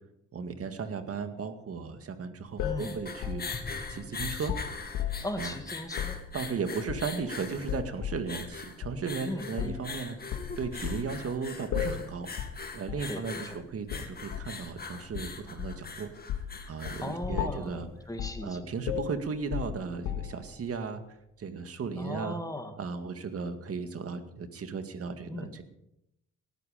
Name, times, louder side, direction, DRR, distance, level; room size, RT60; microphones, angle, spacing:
voice 1, 0.3-3.6 3.9-4.5 5.4-5.5 6.3-12.5 12.7-16.1 16.7-17.9 18.4-21.0 21.4-22.4 22.8-25.6, right 5 dB, 50° right, 8 dB, 2.0 m, -36 dB
sound 1, 2.5-17.9, left 4 dB, 30° left, 2.3 m, -41 dB
sound 2, 2.6-5.4 5.9-6.2 6.9-7.3 7.7-8.3 8.8-9.0 9.6-9.9 10.3-11.1 11.7-12.1 12.4-12.6 12.9-13.1 13.9-14.5 15.1-15.9 16.3-16.6 16.9-17.1 17.4-17.8 18.2-18.5 18.9-20.5, left 9 dB, 90° left, 2.1 m, -35 dB
voice 2, 2.6-3.0 5.2-6.2 9.2-9.8 13.1-13.6 17.0-18.7 21.9-22.8 25.3-25.5, left 1 dB, 10° left, 6 dB, 2.4 m, -38 dB
18.0 x 13.0 x 5.2 m, 0.82 s
cardioid pair, 90°, 30 cm